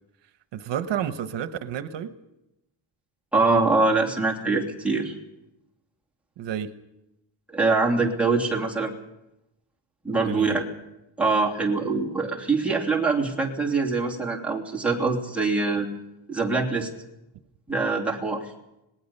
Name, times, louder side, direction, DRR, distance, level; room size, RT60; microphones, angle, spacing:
voice 1, 0.5-2.1 6.4-6.7 10.2-10.6, right 9 dB, 75° right, 11 dB, 1.1 m, -30 dB
voice 2, 3.3-5.1 7.5-8.9 10.0-10.6 11.2-15.9 16.3-16.9 17.7-18.5, right 3 dB, 5° right, -2 dB, 2.9 m, -24 dB
26.5 x 19.5 x 5.5 m, 0.89 s
cardioid pair, 170°, 44 cm